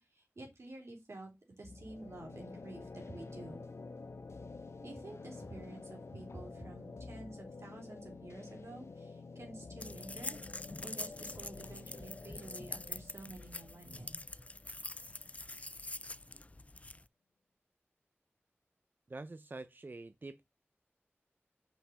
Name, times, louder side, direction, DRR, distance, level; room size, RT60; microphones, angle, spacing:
voice 1, 0.1-3.7 4.8-14.1, right 2 dB, 85° right, 3.3 m, -50 dB
sound 1, 1.6-15.3, left 3 dB, 80° left, 0.8 m, -50 dB
sound 2, 9.8-17.0, left 2 dB, 30° left, 0.4 m, -45 dB
voice 2, 19.1-20.5, right 2 dB, 45° right, 0.5 m, -46 dB
5.7 x 5.7 x 6.7 m
wide cardioid pair, 65°, 5 cm